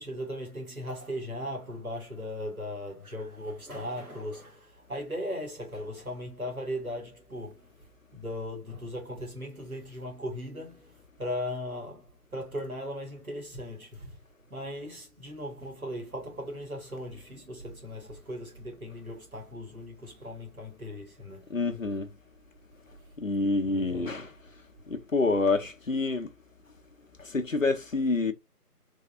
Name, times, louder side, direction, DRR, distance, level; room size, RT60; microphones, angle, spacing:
voice 1, 0.0-14.2 14.5-21.5 23.6-24.2, equal, 65° right, 2.3 m, -38 dB
voice 2, 21.5-22.1 23.2-24.3 24.9-26.3 27.3-28.3, left 3 dB, 60° left, 0.6 m, -27 dB
3.5 x 3.4 x 2.5 m
figure-of-eight pair, 170°, 46 cm